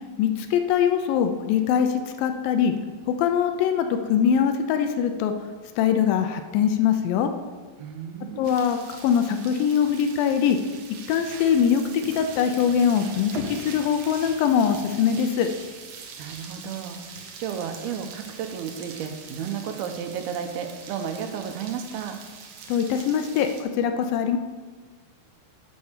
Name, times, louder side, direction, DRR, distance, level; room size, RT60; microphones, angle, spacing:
voice 1, 0.2-2.7 3.1-5.3 5.8-7.3 8.4-10.6 11.1-15.5 22.7-24.4, left 8 dB, 80° left, 7 dB, 2.2 m, -22 dB
voice 2, 7.8-8.6 16.2-22.2, right 7 dB, 90° right, 7 dB, 2.7 m, -33 dB
sound 1, 8.4-23.6, right 5 dB, 70° right, 1.9 m, -42 dB
8.0 x 5.3 x 6.6 m, 1.4 s
omnidirectional pair, 4.3 m